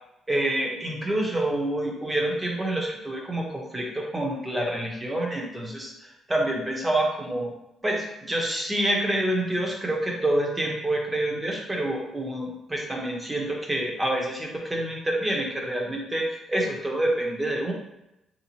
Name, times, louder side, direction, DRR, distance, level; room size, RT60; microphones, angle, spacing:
voice 1, 0.3-5.9 6.3-7.5 7.8-17.7, right 1 dB, 20° right, -1 dB, 0.9 m, -27 dB
3.5 x 2.8 x 2.8 m, 0.88 s
cardioid pair, 90°, 0 cm